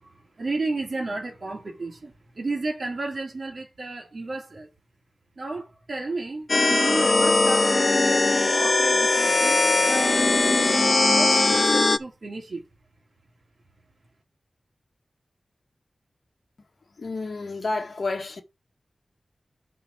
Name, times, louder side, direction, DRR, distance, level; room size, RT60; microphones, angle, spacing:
voice 1, 0.4-4.7 5.4-12.6, right 2 dB, 55° right, 3.0 m, -33 dB
sound 1, 6.5-12.0, left 3 dB, 40° left, 0.5 m, -20 dB
voice 2, 17.0-18.4, left 3 dB, 60° left, 1.8 m, -30 dB
5.9 x 5.5 x 5.7 m
wide cardioid pair, 105°, 0 cm